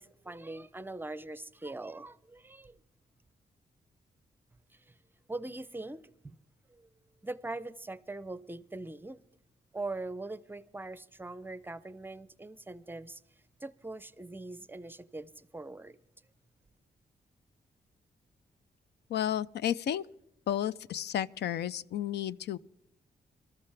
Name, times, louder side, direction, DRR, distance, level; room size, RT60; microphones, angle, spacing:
voice 1, 0.0-2.8 4.7-5.0 5.3-6.3 6.7-6.9 7.2-9.2 9.7-13.2 13.6-16.0, right 2 dB, 10° right, 0.5 m, -42 dB
voice 2, 19.1-20.0 20.5-22.6, left 10 dB, 90° left, 0.4 m, -32 dB
24.5 x 14.0 x 3.4 m
cardioid pair, 105°, 17 cm